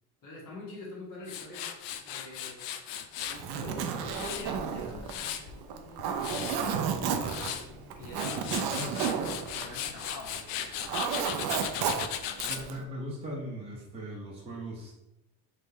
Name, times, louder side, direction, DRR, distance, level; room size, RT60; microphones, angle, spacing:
voice 1, 0.2-1.7 2.0-2.7 3.2-9.1 9.5-11.6, left 2 dB, 45° left, -3 dB, 1.5 m, -45 dB
Tools, 1.3-3.4 3.9-5.5 6.0-6.6 7.1-7.6 8.0-12.6, left 9 dB, 85° left, 0.6 m, -37 dB
Zipper (clothing), 3.2-10.3 10.6-12.8, right 7 dB, 65° right, 0.6 m, -32 dB
Human voice, 3.4-5.7 6.6-8.4, left 1 dB, 15° left, 0.7 m, -51 dB
voice 2, 12.5-14.9, equal, 15° right, -5 dB, 0.9 m, -39 dB
3.7 x 3.3 x 3.8 m, 0.87 s
cardioid pair, 150°, 42 cm